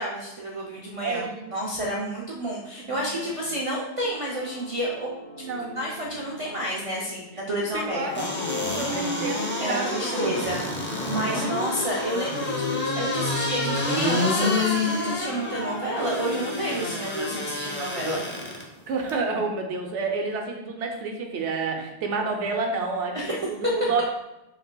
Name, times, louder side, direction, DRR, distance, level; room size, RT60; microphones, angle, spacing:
voice 1, 0.0-5.1 5.8-8.3 9.6-18.2 23.1-23.3, right 1 dB, 45° right, -4 dB, 0.4 m, -30 dB
voice 2, 1.0-1.5 2.8-3.3 5.4-5.8 7.7-8.2 8.7-10.5 11.3-11.5 18.9-24.0, right 4 dB, 85° right, 2 dB, 1.0 m, -30 dB
sound 1, 4.0-18.6, left 4 dB, 50° left, 0.7 m, -38 dB
sound 2, 8.1-18.6 19.1-19.2, left 2 dB, 15° left, 0.4 m, -28 dB
5.4 x 3.3 x 2.2 m, 0.95 s
omnidirectional pair, 1.2 m